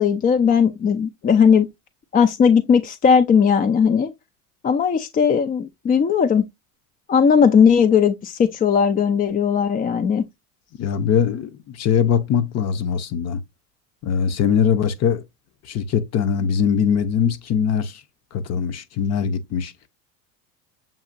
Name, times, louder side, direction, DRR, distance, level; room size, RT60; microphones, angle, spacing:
voice 1, 0.0-1.7 2.1-4.1 4.6-6.4 7.1-10.2, left 6 dB, 20° left, 0.4 m, -17 dB
voice 2, 10.8-13.4 14.0-15.2 15.7-18.0 18.3-19.7, left 7 dB, 35° left, 0.7 m, -21 dB
7.1 x 2.8 x 2.6 m
supercardioid pair, 95°, 43 cm